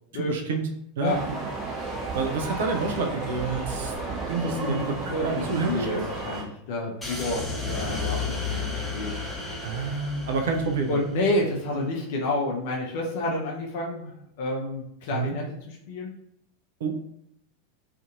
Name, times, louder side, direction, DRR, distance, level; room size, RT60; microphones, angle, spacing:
voice 1, 0.1-0.6 1.0-1.4 2.1-5.0 5.2-6.1 9.6-11.0 15.1-15.3 16.8-17.0, right 4 dB, 60° right, 3 dB, 0.3 m, -29 dB
sound 1, 1.0-6.4, right 3 dB, 30° right, 0.7 m, -33 dB
voice 2, 4.4-4.8 5.1-9.1 10.9-14.1 14.4-16.1, left 1 dB, 55° left, -2 dB, 0.5 m, -29 dB
sound 2, 7.0-11.4, left 4 dB, 10° left, 0.7 m, -32 dB
2.5 x 2.5 x 2.5 m, 0.75 s
figure-of-eight pair, 85°, 0 cm